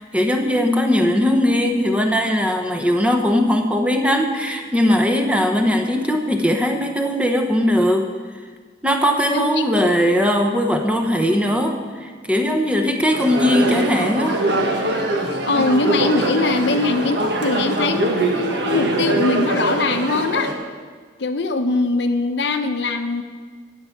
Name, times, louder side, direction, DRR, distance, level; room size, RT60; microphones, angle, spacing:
voice 1, 0.0-8.1 8.8-14.4, equal, 5° right, 4 dB, 0.9 m, -19 dB
sound 1, 13.1-20.5, right 2 dB, 65° right, 1.5 m, -22 dB
voice 2, 15.5-20.5 21.2-23.2, left 3 dB, 65° left, 7 dB, 0.8 m, -21 dB
12.5 x 9.2 x 5.9 m, 1.5 s
head